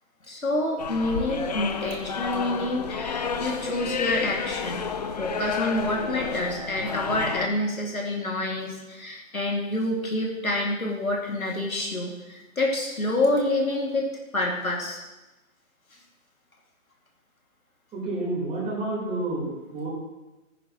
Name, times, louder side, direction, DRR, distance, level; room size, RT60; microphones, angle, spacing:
voice 1, 0.3-4.9 5.2-15.0, left 1 dB, 80° left, -1 dB, 2.5 m, -27 dB
sound 1, 0.8-7.5, left 6 dB, 30° left, 0.5 m, -31 dB
voice 2, 17.9-19.9, right 2 dB, 15° right, -6 dB, 4.2 m, -29 dB
15.0 x 9.8 x 3.1 m, 1.1 s
figure-of-eight pair, 125°, 42 cm